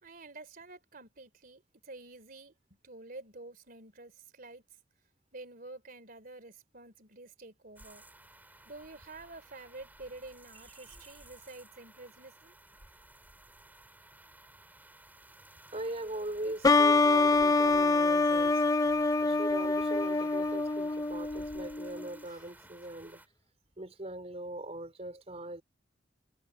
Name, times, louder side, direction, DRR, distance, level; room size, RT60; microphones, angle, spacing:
voice 1, 0.0-2.5 2.8-4.6 5.3-8.0 8.6-12.5, right 2 dB, 55° right, 3.3 m, -49 dB
sound 1, 7.8-23.3, right 1 dB, 10° right, 5.5 m, -56 dB
voice 2, 15.7-18.6 19.2-23.2 23.8-25.6, right 1 dB, 35° right, 3.9 m, -40 dB
sound 2, 16.6-22.1, left 3 dB, 20° left, 0.6 m, -26 dB
head